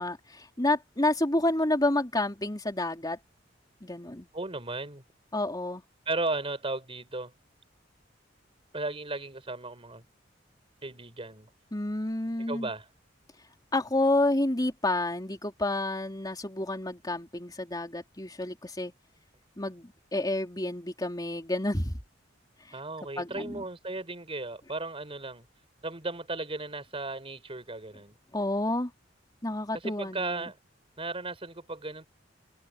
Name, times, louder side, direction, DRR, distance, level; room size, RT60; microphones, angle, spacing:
voice 1, 0.0-3.2 3.8-4.3 5.3-5.8 11.7-12.7 13.7-18.9 19.6-22.0 23.2-23.7 28.3-28.9 29.4-30.5, left 2 dB, 20° left, 3.5 m, -29 dB
voice 2, 4.3-5.0 6.0-7.3 8.7-10.0 10.8-11.5 12.5-12.9 22.7-25.5 25.8-28.2 29.7-30.6 31.0-32.1, right 2 dB, 30° right, 5.0 m, -35 dB
head